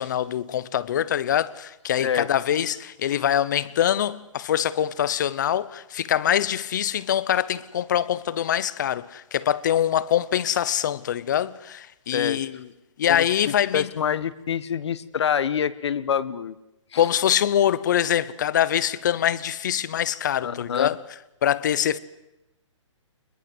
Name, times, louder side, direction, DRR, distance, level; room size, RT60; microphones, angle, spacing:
voice 1, 0.0-12.7 13.0-13.9 17.0-21.0 21.4-22.0, left 10 dB, 35° left, 0.8 m, -24 dB
voice 2, 13.1-16.6 16.9-17.1 20.4-20.9, left 8 dB, 60° left, 1.3 m, -26 dB
24.0 x 21.5 x 7.9 m
hypercardioid pair, 170°, 16 cm